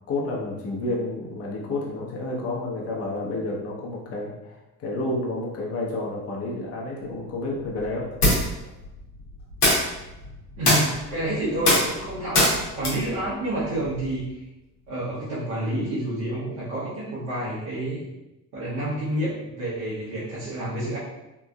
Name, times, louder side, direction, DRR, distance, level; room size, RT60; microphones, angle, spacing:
voice 1, 0.1-8.1, left 2 dB, 30° left, -3 dB, 0.8 m, -30 dB
sound 1, 7.1-14.3, left 1 dB, 85° left, 0.9 m, -25 dB
voice 2, 10.6-14.3 14.9-18.0 18.5-21.0, right 1 dB, 60° right, -10 dB, 1.1 m, -29 dB
3.4 x 2.9 x 2.2 m, 0.96 s
figure-of-eight pair, 50°, 45 cm